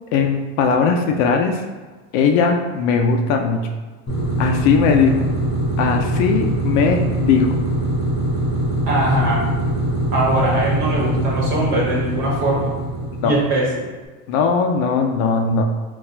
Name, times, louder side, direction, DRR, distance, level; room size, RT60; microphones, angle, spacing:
voice 1, 0.1-1.6 2.1-3.7 4.4-5.3 5.8-7.6 13.2-13.3 14.3-15.6, left 5 dB, 50° left, 3 dB, 0.4 m, -18 dB
sound 1, 4.1-13.9, right 1 dB, 25° left, 0.9 m, -22 dB
voice 2, 8.9-9.4 10.1-12.7 13.2-13.7, right 1 dB, 50° right, -4 dB, 1.5 m, -20 dB
4.0 x 2.4 x 2.6 m, 1.3 s
supercardioid pair, 110°, 42 cm